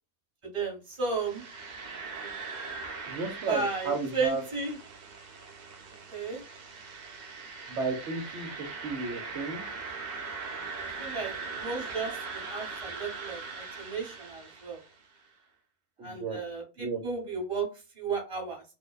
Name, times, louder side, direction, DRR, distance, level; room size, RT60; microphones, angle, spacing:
voice 1, 0.4-1.4 3.5-4.8 6.1-6.4 11.0-14.8 16.0-17.7 17.9-18.6, right 4 dB, 25° right, -1 dB, 1.1 m, -34 dB
sound 1, 1.0-15.0, right 4 dB, 85° right, 0.4 m, -41 dB
voice 2, 3.1-4.4 7.7-9.6 16.0-16.4 16.8-17.0, right 3 dB, 60° right, 0 dB, 0.8 m, -33 dB
2.6 x 2.1 x 2.3 m, 0.29 s
omnidirectional pair, 1.6 m